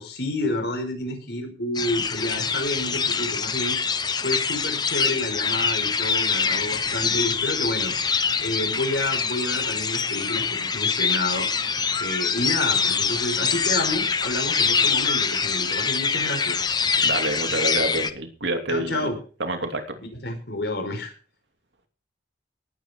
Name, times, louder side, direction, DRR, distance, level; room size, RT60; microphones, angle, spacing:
voice 1, 0.0-3.8 4.2-7.9 8.4-11.5 12.0-16.7 18.7-19.2 20.0-21.1, left 1 dB, 70° left, 5 dB, 5.0 m, -29 dB
sound 1, 1.7-18.1, left 5 dB, 25° left, 0.8 m, -24 dB
voice 2, 17.0-19.1 19.4-20.0, right 2 dB, 85° right, 4 dB, 2.9 m, -27 dB
19.0 x 9.0 x 4.6 m, 0.38 s
head